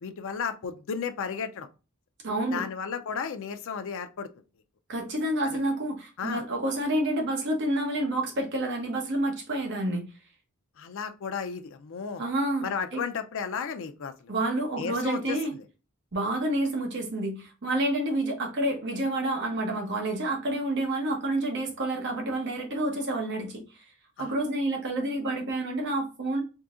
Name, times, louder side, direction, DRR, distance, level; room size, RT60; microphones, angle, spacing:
voice 1, 0.0-1.7 2.5-4.3 5.4-5.6 6.2-6.4 10.8-12.2 12.6-14.3 14.8-15.6 24.2-24.3, left 6 dB, 65° left, 0.4 m, -34 dB
voice 2, 2.2-2.7 4.9-10.1 12.2-12.6 12.9-13.0 14.3-15.5 16.1-23.6 24.2-26.4, right 1 dB, 55° right, 0.9 m, -29 dB
3.7 x 2.7 x 2.4 m
head